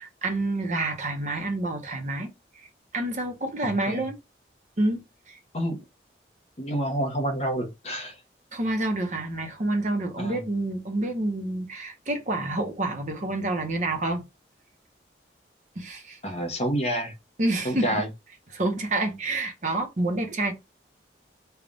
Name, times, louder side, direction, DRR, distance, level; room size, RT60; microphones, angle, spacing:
voice 1, 0.0-2.3 2.5-2.7 2.9-4.2 4.8-5.4 8.5-14.2 15.8-16.2 17.4-18.1 18.5-20.5, right 2 dB, 45° right, 0.8 m, -28 dB
voice 2, 6.6-8.1 10.2-10.4 16.2-17.1 17.6-18.1, right 1 dB, 35° left, 0.9 m, -28 dB
3.4 x 2.4 x 3.8 m
head